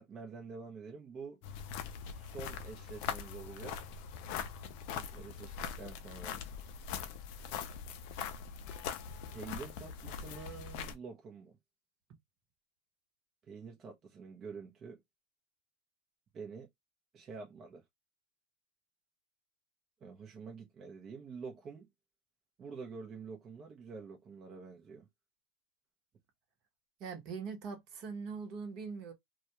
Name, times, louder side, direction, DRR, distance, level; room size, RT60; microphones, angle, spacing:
voice 1, 0.0-1.4 2.1-3.8 4.9-6.4 9.3-11.6 13.4-15.0 16.3-16.7 17.1-17.8 20.0-21.9 22.6-25.1, right 5 dB, 30° right, 0.6 m, -47 dB
sound 1, 1.4-10.9, left 7 dB, 65° left, 0.4 m, -42 dB
voice 2, 27.0-29.1, right 5 dB, 50° right, 0.9 m, -42 dB
2.3 x 2.2 x 2.8 m
supercardioid pair, 120°, 0 cm